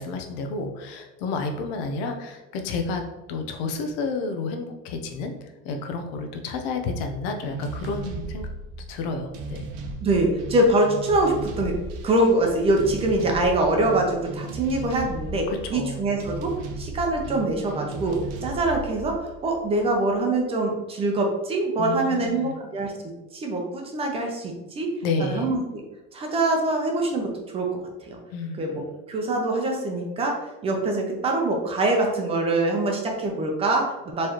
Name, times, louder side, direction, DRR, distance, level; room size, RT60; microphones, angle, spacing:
voice 1, 0.0-3.0 3.3-8.5 8.9-9.6 15.5-16.0 21.8-22.5 25.0-25.5 28.3-28.7, left 3 dB, 90° left, 5 dB, 0.8 m, -30 dB
sound 1, 7.4-20.1, right 2 dB, 70° right, 0.7 m, -36 dB
voice 2, 10.0-11.8 12.0-22.9 23.3-24.9 25.2-25.8 26.1-27.7 28.0-28.2 28.6-28.8 29.1-34.3, right 2 dB, 20° right, 2 dB, 0.5 m, -24 dB
4.5 x 3.2 x 2.9 m, 1.1 s
cardioid pair, 170°, 29 cm